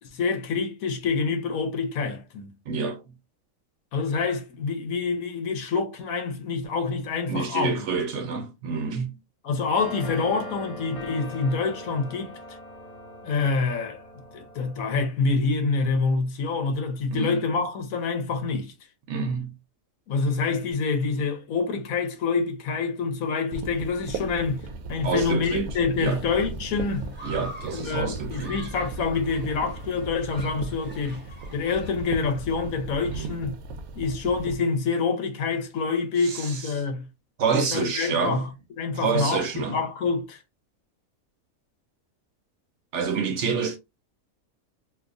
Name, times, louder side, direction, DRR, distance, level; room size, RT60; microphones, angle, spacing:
voice 1, 0.0-2.5 3.9-7.9 9.4-12.3 13.2-14.0 14.3-18.7 20.1-24.6 24.9-27.2 27.7-31.2 31.5-33.6 33.9-37.1 37.7-38.5 38.8-40.4, left 4 dB, 75° left, 1.2 m, -26 dB
voice 2, 2.7-3.0 7.3-9.2 17.1-17.4 19.1-19.5 25.0-25.7 26.0-26.2 27.2-28.5 33.1-33.4 36.2-36.7 37.4-38.4 38.9-39.8 42.9-43.8, right 5 dB, 60° right, 0.9 m, -28 dB
sound 1, 9.7-15.1, left 1 dB, 30° left, 0.9 m, -41 dB
sound 2, 23.5-34.6, right 3 dB, 80° right, 1.1 m, -37 dB
Human group actions, 26.0-32.6, right 1 dB, 10° right, 0.9 m, -46 dB
4.4 x 2.3 x 2.5 m
omnidirectional pair, 1.5 m